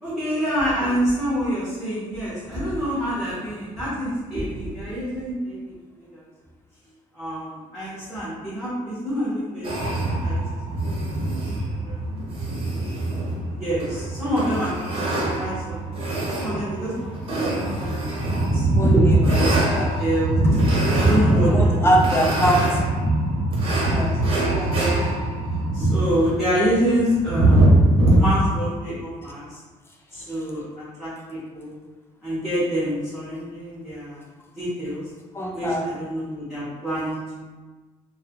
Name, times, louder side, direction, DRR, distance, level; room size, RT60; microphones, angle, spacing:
voice 1, 0.0-5.7 6.1-6.2 7.1-10.4 11.8-12.0 12.5-12.9 13.6-18.7 18.9-19.6 20.0-20.4 20.9-21.9 23.8-24.7 25.7-27.6 28.1-29.6 30.1-30.6 31.0-31.7 32.2-34.2 34.5-35.0 35.5-37.4, equal, ahead, -12 dB, 0.9 m, -27 dB
sound 1, 9.6-28.2, right 1 dB, 45° right, 0.8 m, -22 dB
voice 2, 18.7-19.9 21.3-22.8 23.8-24.8 35.3-35.8, right 1 dB, 15° left, -1 dB, 0.5 m, -24 dB
2.6 x 2.3 x 2.8 m, 1.3 s
cardioid pair, 130°, 14 cm